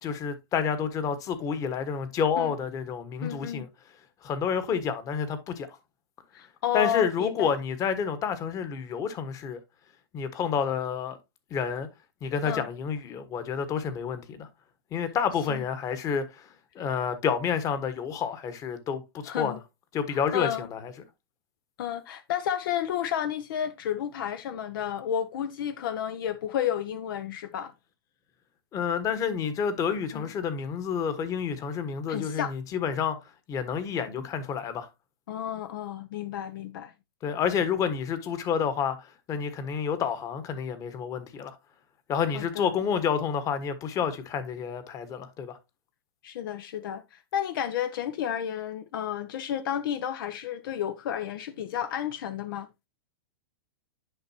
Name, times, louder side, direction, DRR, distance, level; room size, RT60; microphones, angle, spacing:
voice 1, 0.0-3.7 4.2-5.7 6.7-9.6 10.1-11.2 11.5-11.9 12.2-14.5 14.9-16.5 16.7-19.6 19.9-20.9 28.7-33.2 33.5-34.9 37.2-41.6 42.1-45.6, left 7 dB, 25° left, 1.3 m, -29 dB
voice 2, 3.2-3.7 6.3-7.5 12.4-12.7 15.5-15.6 19.3-19.6 20.1-20.7 21.8-27.7 30.1-30.3 32.1-32.5 35.3-36.9 42.3-42.7 46.2-52.7, left 10 dB, 60° left, 0.7 m, -32 dB
10.5 x 5.3 x 2.8 m
hypercardioid pair, 135°, 13 cm